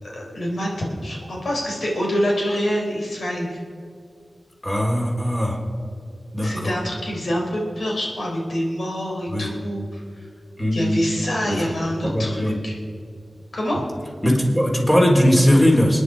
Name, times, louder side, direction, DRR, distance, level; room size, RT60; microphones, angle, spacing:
voice 1, 0.0-3.6 6.4-10.0 10.7-12.7 13.5-13.8, equal, 80° left, -2 dB, 4.0 m, -26 dB
voice 2, 4.6-5.6 6.3-6.7 9.3-9.5 10.6-11.0 12.0-12.6 14.2-16.0, equal, 20° left, -1 dB, 3.8 m, -19 dB
28.5 x 9.9 x 5.0 m, 2.2 s
wide cardioid pair, 85°, 0 cm